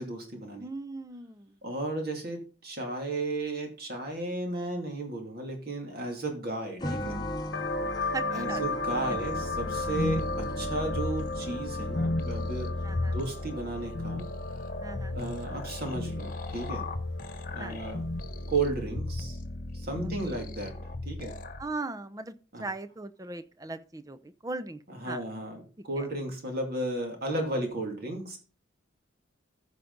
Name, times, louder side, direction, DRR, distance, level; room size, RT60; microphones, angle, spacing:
voice 1, 0.0-0.7 1.6-7.2 8.3-12.7 13.1-14.3 15.1-16.8 17.5-18.0 18.5-19.4 19.7-20.7 21.0-21.3 22.5-22.6 24.9-28.4, right 2 dB, 50° right, 2 dB, 2.5 m, -34 dB
voice 2, 0.6-1.6 8.1-8.6 12.8-13.2 14.8-15.2 17.6-17.8 20.2-20.4 21.6-24.8 25.0-25.2 26.0-26.1, right 3 dB, 20° right, 11 dB, 0.6 m, -38 dB
sound 1, 6.8-11.9, equal, 20° left, 1.0 m, -37 dB
sound 2, 7.5-18.8, left 3 dB, 65° left, 0.9 m, -37 dB
sound 3, 9.2-21.6, left 2 dB, 45° left, 1.1 m, -35 dB
14.0 x 5.1 x 4.0 m, 0.38 s
head